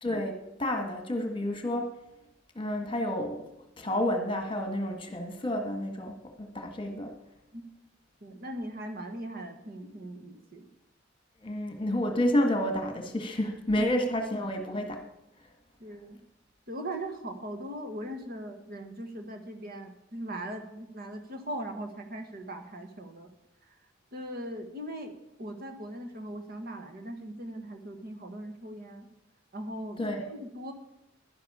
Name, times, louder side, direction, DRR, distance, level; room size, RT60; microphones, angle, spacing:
voice 1, 0.0-1.9 2.5-3.5 3.8-7.1 11.4-15.0 30.0-30.3, left 1 dB, 25° left, 5 dB, 1.5 m, -30 dB
voice 2, 8.2-10.7 13.7-13.8 15.8-16.2 16.7-23.3 24.1-25.1 25.4-29.1 29.5-30.7, right 1 dB, 50° right, 5 dB, 1.4 m, -39 dB
11.5 x 10.5 x 4.9 m, 0.85 s
head